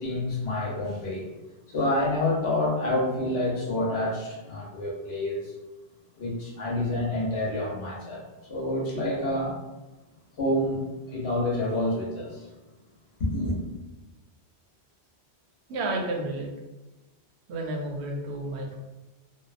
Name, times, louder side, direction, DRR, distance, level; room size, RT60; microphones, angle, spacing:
voice 1, 0.0-1.3 1.7-5.5 6.2-8.2 8.5-9.5 10.4-12.5 13.2-13.6, left 1 dB, 70° left, -4 dB, 1.0 m, -28 dB
voice 2, 15.7-16.5 17.5-18.8, right 2 dB, 80° right, 0 dB, 0.8 m, -31 dB
2.6 x 2.1 x 2.4 m, 1.1 s
omnidirectional pair, 1.1 m